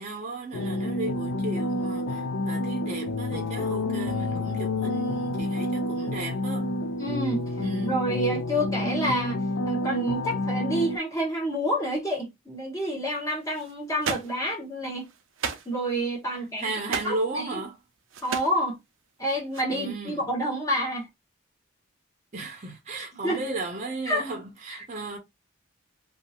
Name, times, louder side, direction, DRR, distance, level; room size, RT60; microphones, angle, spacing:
voice 1, 0.0-6.7 7.6-8.0 16.4-17.8 19.7-20.3 22.3-25.2, right 2 dB, 35° right, 0.6 m, -35 dB
sound 1, 0.5-11.0, left 1 dB, 85° left, 0.4 m, -29 dB
voice 2, 7.0-7.5 7.8-9.4 9.7-15.1 15.7-16.7 17.0-17.5 18.2-18.8 19.2-21.1 23.2-23.4 24.0-24.2 24.7-24.8, equal, 15° left, 0.9 m, -28 dB
sound 2, 13.5-13.7 14.0-14.4 14.9-15.7 16.5-17.2 18.1-18.5 19.5-19.6, right 6 dB, 80° right, 0.5 m, -33 dB
2.7 x 2.3 x 2.8 m
head